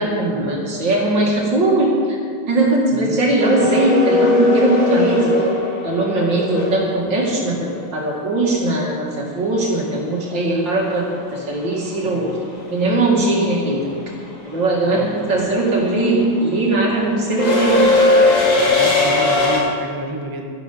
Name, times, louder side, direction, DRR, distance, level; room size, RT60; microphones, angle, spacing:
voice 1, 0.0-2.2 2.5-5.3 5.8-12.3 12.7-13.9 14.4-17.9, right 2 dB, 75° right, -2 dB, 3.0 m, -19 dB
voice 2, 2.9-3.3 12.0-12.3 14.8-15.1 18.6-20.5, right 2 dB, 15° right, 3 dB, 0.8 m, -29 dB
sound 1, 3.4-7.4 9.8-9.9 11.2-11.5 11.8-19.6, left 2 dB, 90° left, 3.0 m, -19 dB
11.5 x 11.5 x 5.4 m, 2.2 s
omnidirectional pair, 2.0 m